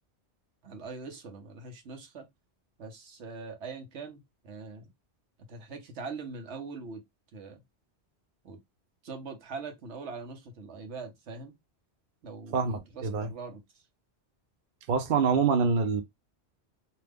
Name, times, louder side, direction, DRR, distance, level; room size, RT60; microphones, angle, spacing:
voice 1, 0.6-2.3 2.8-4.9 5.5-7.0 7.3-7.6 8.4-8.6 9.0-11.5 12.2-13.6, right 4 dB, 85° right, 1.2 m, -42 dB
voice 2, 12.5-13.3 14.9-16.0, right 5 dB, 60° right, 0.7 m, -25 dB
2.9 x 2.2 x 3.4 m
omnidirectional pair, 1.1 m